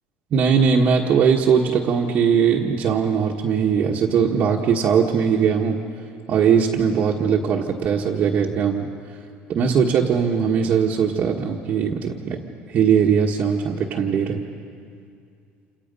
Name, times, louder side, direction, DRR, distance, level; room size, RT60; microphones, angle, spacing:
voice 1, 0.3-5.8 6.3-8.9 9.5-12.4 12.7-14.4, right 6 dB, 40° right, -2 dB, 1.5 m, -20 dB
28.5 x 28.0 x 5.5 m, 2.4 s
cardioid pair, 155°, 4 cm